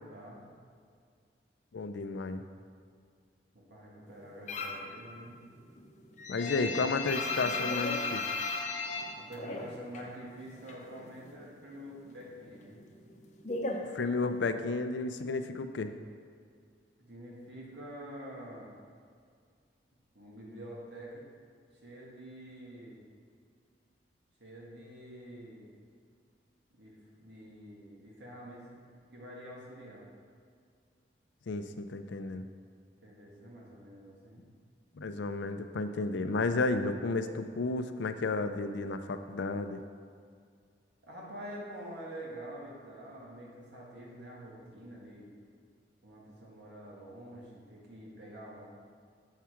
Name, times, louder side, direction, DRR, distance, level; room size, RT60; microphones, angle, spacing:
voice 1, 0.1-0.4 3.5-5.4 6.3-6.8 9.2-12.8 17.0-18.7 20.1-21.3 21.8-23.0 24.4-25.7 26.7-30.1 33.0-34.5 41.0-45.3 46.0-48.7, right 1 dB, 80° right, -4 dB, 1.9 m, -47 dB
voice 2, 1.7-2.4 6.3-8.3 13.9-16.0 31.5-32.5 35.0-39.8, left 3 dB, 90° left, 9 dB, 0.5 m, -32 dB
sound 1, 4.5-4.9 5.3-10.1 10.4-11.5 11.7-14.6, left 3 dB, 40° left, 0.7 m, -35 dB
7.3 x 4.8 x 5.7 m, 2.2 s
head